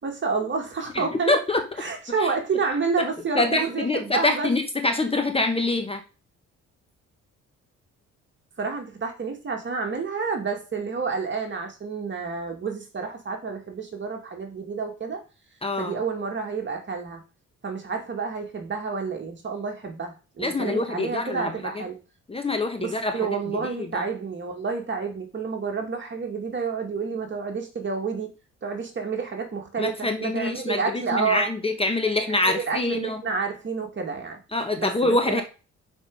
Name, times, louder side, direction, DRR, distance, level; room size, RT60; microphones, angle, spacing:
voice 1, 0.0-1.4 1.8-4.5 8.6-15.2 15.8-17.2 17.6-22.0 22.8-28.3 28.6-31.5 32.3-34.4 34.8-35.4, right 5 dB, 40° right, 3 dB, 2.2 m, -29 dB
voice 2, 0.9-1.6 2.2-2.3 3.0-3.1 3.4-6.0 15.6-16.0 20.4-21.8 22.3-23.2 23.8-24.0 29.8-33.2 34.5-35.4, left 2 dB, 20° left, 6 dB, 1.1 m, -25 dB
6.0 x 5.2 x 5.4 m, 0.33 s
cardioid pair, 90°, 30 cm